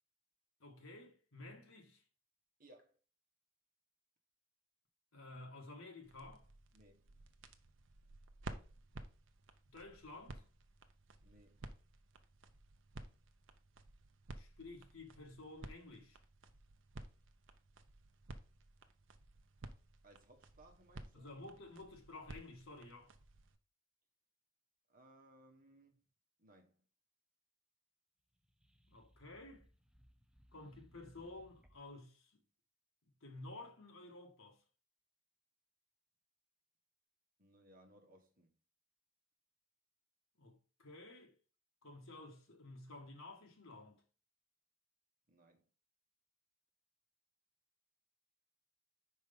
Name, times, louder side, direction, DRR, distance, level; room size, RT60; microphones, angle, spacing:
voice 1, 0.6-2.0 5.1-6.5 9.7-10.4 14.4-16.2 21.1-23.1 28.9-29.7 30.5-32.4 33.2-34.6 40.4-41.3 41.8-44.0, left 2 dB, 80° left, 1.7 m, -53 dB
voice 2, 2.6-3.0 6.7-7.1 11.2-11.6 20.0-21.3 24.9-26.0 26.4-26.8 37.4-38.5 45.3-45.7, right 1 dB, 40° right, 1.4 m, -64 dB
sound 1, 6.0-23.6, right 2 dB, 65° right, 0.7 m, -55 dB
sound 2, 28.3-32.0, equal, 5° right, 0.4 m, -67 dB
5.3 x 4.7 x 5.3 m
head